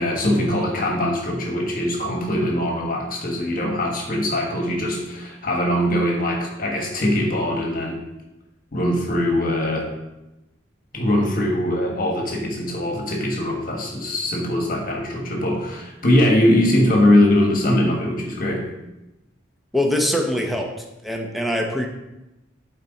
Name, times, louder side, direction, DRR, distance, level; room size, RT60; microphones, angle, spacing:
voice 1, 0.0-8.0 8.7-9.9 10.9-18.6, left 1 dB, 45° left, 1 dB, 1.3 m, -21 dB
voice 2, 19.7-20.7 21.0-21.9, left 1 dB, ahead, 1 dB, 0.8 m, -22 dB
12.0 x 4.4 x 4.0 m, 0.97 s
head